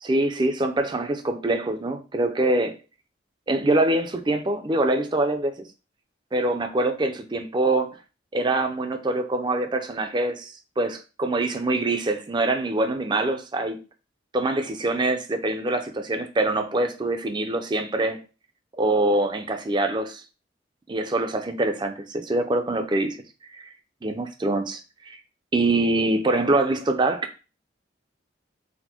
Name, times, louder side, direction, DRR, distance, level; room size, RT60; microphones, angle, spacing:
voice 1, 0.0-2.7 3.5-5.7 6.3-8.0 8.3-13.8 14.3-18.2 18.7-20.2 20.9-23.2 23.5-23.7 24.0-24.8 25.1-25.2 25.5-27.3, right 2 dB, 25° right, 0.4 m, -24 dB
4.2 x 2.1 x 4.2 m
head